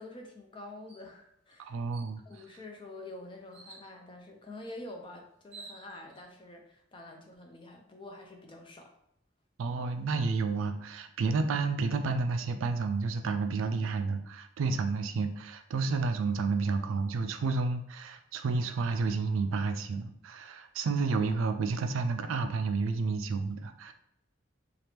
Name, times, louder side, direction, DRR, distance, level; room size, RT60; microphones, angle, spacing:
voice 1, 0.0-1.8 2.2-8.9, left 2 dB, 25° left, 2 dB, 0.4 m, -47 dB
sound 1, 0.9-1.1 1.5-1.6 1.9-2.5 3.5-3.9 5.0-5.1 5.4-6.2, right 3 dB, 30° right, 0.6 m, -51 dB
voice 2, 1.6-2.2 9.6-23.9, right 4 dB, 75° right, 8 dB, 0.3 m, -30 dB
2.9 x 2.4 x 3.3 m, 0.77 s
head